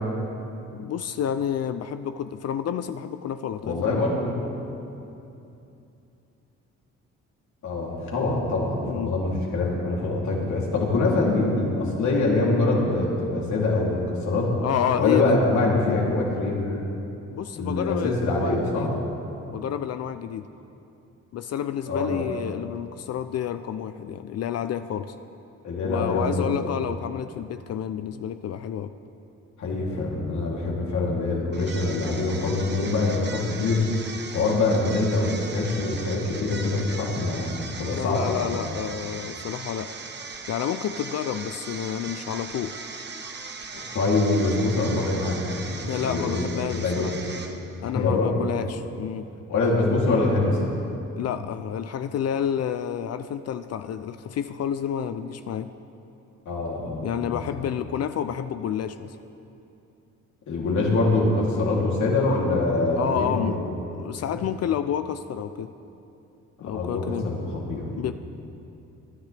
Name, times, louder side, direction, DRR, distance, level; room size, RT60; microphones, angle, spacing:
voice 1, 0.7-4.1 8.8-9.1 14.6-15.4 17.3-18.9 19.5-20.5 21.3-25.1 25.8-28.9 37.9-39.9 40.5-42.8 45.9-47.1 47.8-49.3 51.1-55.7 57.0-59.2 63.0-63.6 63.9-65.7 66.6-67.3 68.0-68.1, left 9 dB, 55° left, 10 dB, 0.5 m, -29 dB
voice 2, 3.6-4.3 7.6-14.5 15.0-16.8 17.5-18.9 21.9-22.3 25.6-26.5 29.6-33.8 34.3-38.5 43.9-47.2 47.9-48.4 49.5-50.6 56.4-57.4 60.5-63.6 64.3-64.4 66.6-67.9, left 2 dB, 70° left, -3 dB, 3.2 m, -24 dB
sound 1, 31.5-47.9, right 4 dB, 35° right, 1.0 m, -39 dB
22.0 x 10.5 x 3.4 m, 2.8 s
cardioid pair, 90°, 30 cm